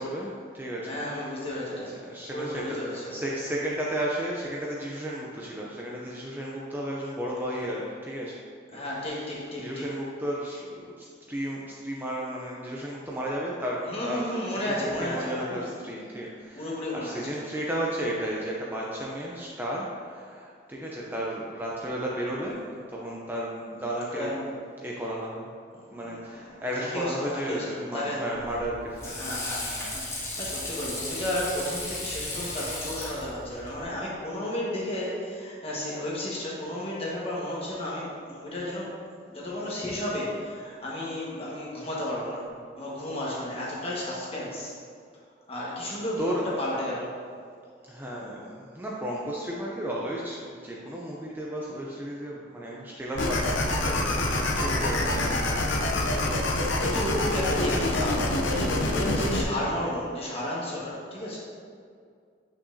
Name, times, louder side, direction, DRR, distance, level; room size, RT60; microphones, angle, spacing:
voice 1, 0.0-1.5 1.8-8.3 8.7-22.6 22.9-24.4 24.8-25.5 25.9-29.4 32.1-32.2 45.9-46.5 47.8-55.4 56.1-56.2, right 1 dB, 10° right, -4 dB, 0.5 m, -34 dB
voice 2, 0.9-2.0 2.3-3.2 8.7-9.8 13.9-15.7 16.5-17.4 24.1-24.5 26.0-28.3 29.0-39.0 39.3-42.4 42.7-44.7 45.5-47.1 56.8-61.4, left 1 dB, 30° left, -6 dB, 1.5 m, -33 dB
Water / Sink (filling or washing), 28.3-33.8, left 1 dB, 15° left, 0.9 m, -35 dB
sound 1, 53.1-59.4, left 2 dB, 80° left, 0.7 m, -26 dB
8.6 x 5.7 x 2.7 m, 2.2 s
head